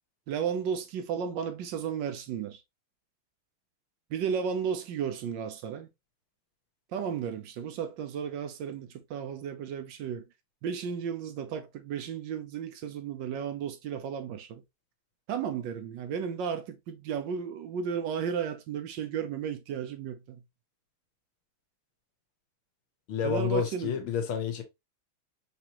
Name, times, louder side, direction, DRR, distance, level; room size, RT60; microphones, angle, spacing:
voice 1, 0.3-2.6 4.1-5.9 6.9-10.2 10.6-14.6 15.3-20.4 23.2-24.0, right 7 dB, 70° right, 1.2 m, -34 dB
voice 2, 23.1-24.6, left 7 dB, 90° left, 1.8 m, -29 dB
4.9 x 2.9 x 2.8 m
omnidirectional pair, 2.3 m